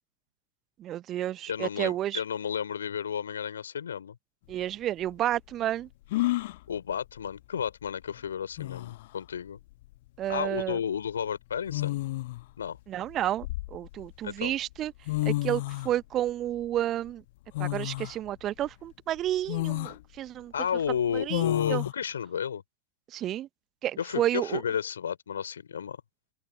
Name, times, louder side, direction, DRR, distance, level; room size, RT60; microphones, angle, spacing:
voice 1, 0.8-2.2 4.5-5.9 10.2-10.8 12.9-14.9 15.2-17.2 17.6-20.5 21.1-21.4 21.7-21.8 23.1-23.5 23.8-24.6, right 12 dB, 30° right, 0.7 m, -31 dB
voice 2, 1.5-4.2 6.7-9.6 10.3-12.0 12.6-12.8 14.2-14.5 20.5-22.6 24.0-26.0, left 8 dB, 70° left, 4.2 m, -32 dB
sound 1, 4.5-4.6 6.1-6.6 8.1-8.2 8.6-9.1 10.4-10.6 11.7-12.5 13.1-14.1 14.8-14.9 15.1-15.9 17.5-18.1 18.7-18.8 19.5-20.0 21.3-21.9, left 18 dB, 50° left, 1.3 m, -30 dB
open air
figure-of-eight pair, 90°, 0 cm